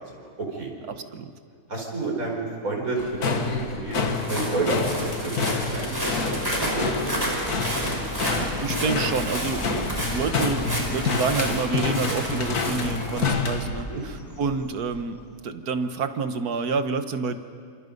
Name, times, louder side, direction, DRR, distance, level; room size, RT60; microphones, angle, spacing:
voice 1, 0.0-0.7 1.7-7.3 13.9-14.0, right 3 dB, 65° right, -1 dB, 5.3 m, -30 dB
voice 2, 0.9-1.3 8.2-17.4, right 5 dB, 85° right, 9 dB, 1.7 m, -28 dB
sound 1, 3.0-13.8, left 4 dB, 85° left, 2.1 m, -28 dB
Bird, 4.1-15.5, left 1 dB, 10° left, 1.4 m, -39 dB
Walk footsteps, 4.1-13.2, equal, 15° right, 4.9 m, -31 dB
28.5 x 27.5 x 5.4 m, 2.3 s
omnidirectional pair, 1.6 m